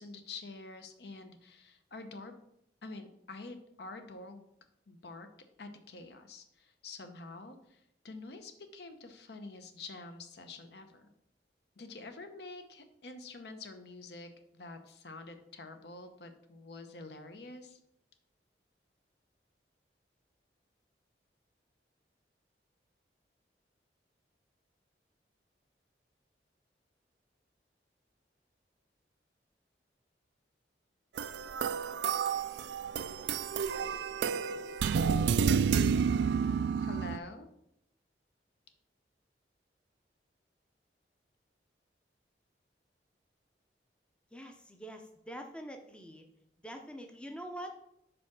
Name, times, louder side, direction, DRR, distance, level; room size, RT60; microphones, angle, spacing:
voice 1, 0.0-2.4 2.8-4.4 4.9-5.3 5.6-11.1 11.8-17.8 36.8-37.5, left 3 dB, 65° left, 7 dB, 0.8 m, -47 dB
sound 1, 31.2-37.2, right 6 dB, 75° right, 0.3 m, -30 dB
voice 2, 44.3-46.2 46.6-47.8, equal, 5° left, 4 dB, 0.5 m, -45 dB
5.1 x 4.7 x 5.9 m, 0.77 s
head